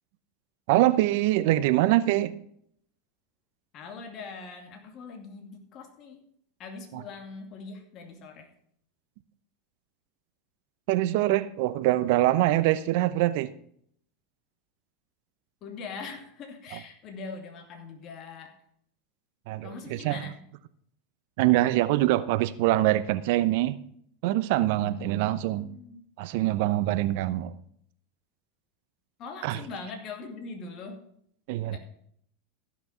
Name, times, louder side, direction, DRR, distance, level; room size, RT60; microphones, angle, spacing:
voice 1, 0.7-2.3 6.9-7.0 10.9-13.5 16.7-16.8 19.5-20.2 21.4-23.8 24.2-25.7 26.2-27.6 29.4-29.6 31.5-31.8, right 15 dB, 65° right, 0.7 m, -24 dB
voice 2, 3.7-6.2 6.6-8.5 15.6-18.5 19.6-20.4 24.7-26.0 29.2-31.1 31.7-31.8, left 4 dB, 45° left, 2.4 m, -42 dB
15.0 x 6.1 x 5.7 m
hypercardioid pair, 100°, 0 cm